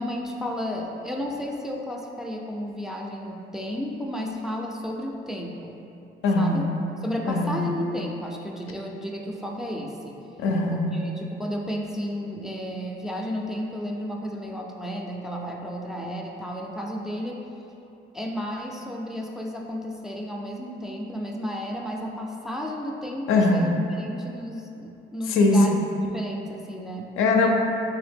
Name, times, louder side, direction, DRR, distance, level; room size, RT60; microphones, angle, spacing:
voice 1, 0.0-5.8 6.4-6.7 7.0-10.2 10.7-17.4 18.1-23.7 24.0-25.8 26.0-27.1, equal, ahead, -1 dB, 0.3 m, -33 dB
voice 2, 6.2-6.7 7.3-7.5 10.4-11.0 23.3-23.7 25.3-25.8 27.2-27.5, left 2 dB, 85° left, 1 dB, 0.4 m, -21 dB
3.1 x 2.8 x 3.4 m, 2.8 s
cardioid pair, 90°, 20 cm